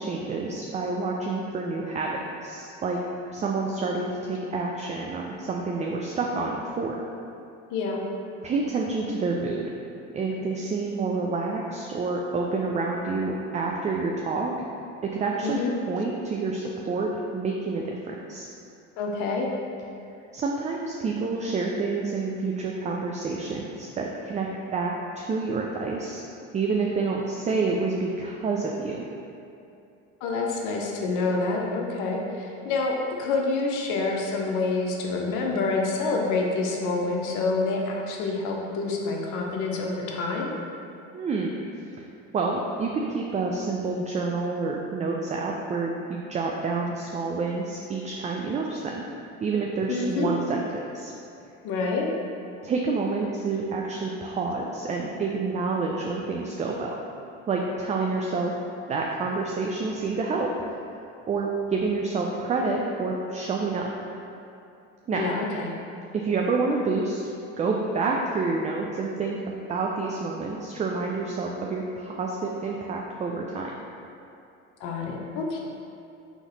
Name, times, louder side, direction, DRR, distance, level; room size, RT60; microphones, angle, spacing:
voice 1, 0.0-2.1 2.4-3.0 3.3-7.0 8.4-9.6 10.1-14.5 15.0-15.6 15.9-18.5 20.3-26.2 26.5-29.0 41.1-41.5 42.0-42.1 42.3-49.0 49.4-51.1 52.6-57.0 57.5-58.5 58.9-60.5 61.3-63.9 65.1-65.3 66.1-67.2 67.6-73.7, right 3 dB, 20° right, 0 dB, 0.3 m, -28 dB
voice 2, 7.7-8.0 15.4-15.7 19.0-19.5 30.2-40.5 49.9-50.3 51.6-52.1 65.1-65.7 74.8-75.6, left 3 dB, 65° left, 0 dB, 0.7 m, -27 dB
3.9 x 3.0 x 3.9 m, 2.6 s
hypercardioid pair, 70°, 34 cm